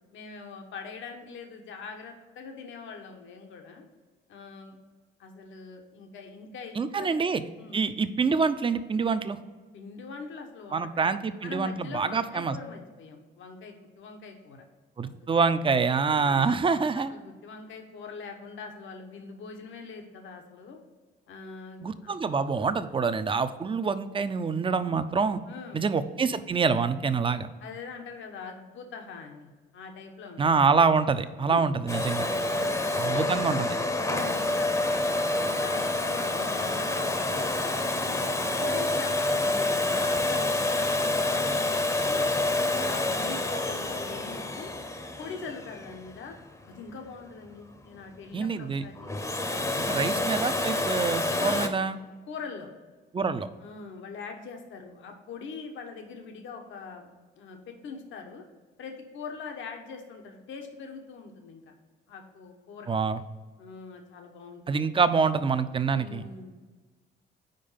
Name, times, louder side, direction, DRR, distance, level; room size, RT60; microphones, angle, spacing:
voice 1, 0.1-3.8 4.3-4.8 5.2-7.2 7.6-7.8 9.7-11.1 11.4-14.6 15.2-15.3 16.1-16.5 16.9-20.8 21.3-22.1 25.5-25.8 27.6-30.4 31.5-31.6 32.2-33.4 34.0-37.6 37.9-42.2 42.6-44.7 45.2-46.4 46.7-49.1 49.5-50.0 51.4-51.7 52.3-52.7 53.6-57.0 57.4-58.4 58.8-61.7 62.1-62.9 63.6-64.9 65.9-66.5, left 5 dB, 75° left, 4 dB, 1.0 m, -42 dB
voice 2, 6.8-7.4 7.7-9.4 10.7-12.6 15.0-17.1 21.8-25.4 25.7-27.5 30.4-32.3 33.0-33.7 48.3-48.8 49.8-52.0 53.1-53.5 62.9-63.2 64.7-66.2, right 5 dB, 25° right, 12 dB, 0.4 m, -26 dB
Domestic sounds home sounds, 31.9-46.6 49.0-51.7, left 2 dB, 15° left, 0.7 m, -28 dB
5.2 x 4.6 x 5.6 m, 1.3 s
cardioid pair, 90°, 20 cm